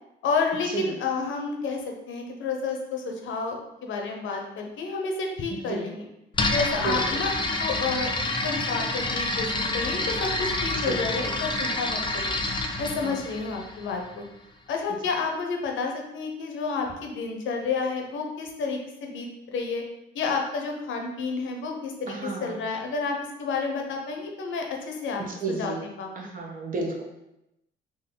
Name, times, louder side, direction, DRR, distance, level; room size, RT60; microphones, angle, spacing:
voice 1, 0.2-1.8 2.1-3.6 3.8-6.1 6.5-7.3 7.6-8.1 8.4-12.4 12.8-14.2 14.7-19.8 20.1-26.3, left 4 dB, 75° left, 2 dB, 0.8 m, -30 dB
sound 1, 6.3-14.1, left 2 dB, 25° left, 0.5 m, -28 dB
voice 2, 22.1-22.6 25.4-25.8 26.2-27.0, right 3 dB, 45° right, 0 dB, 1.0 m, -31 dB
3.7 x 2.6 x 3.9 m, 0.87 s
cardioid pair, 90°, 20 cm